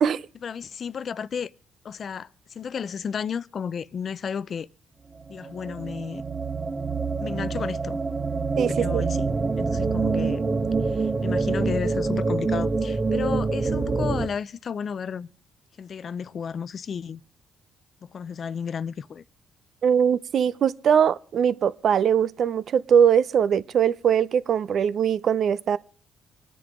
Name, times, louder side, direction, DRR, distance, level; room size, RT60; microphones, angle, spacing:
voice 1, 0.4-1.5 1.8-4.7 5.3-6.2 7.2-8.0 8.8-9.3 9.6-10.4 10.8-15.3 15.8-17.2 18.0-19.2, left 7 dB, 50° left, 0.6 m, -32 dB
sound 1, 5.2-14.3, right 4 dB, 35° right, 1.2 m, -26 dB
voice 2, 8.6-9.0 19.8-25.8, right 8 dB, 60° right, 0.6 m, -21 dB
25.0 x 10.0 x 3.7 m
cardioid pair, 90°, 0 cm